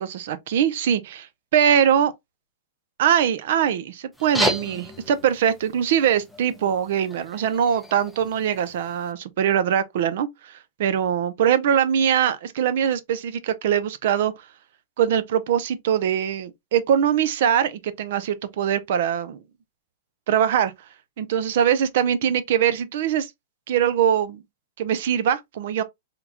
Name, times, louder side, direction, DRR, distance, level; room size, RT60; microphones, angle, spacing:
voice 1, 0.0-2.1 3.0-14.3 15.0-19.4 20.3-20.7 21.2-23.3 23.7-24.4 24.8-25.8, right 9 dB, 65° right, 0.6 m, -22 dB
sound 1, 4.1-9.1, equal, ahead, 0.6 m, -33 dB
3.6 x 2.4 x 2.8 m
hypercardioid pair, 140°, 0 cm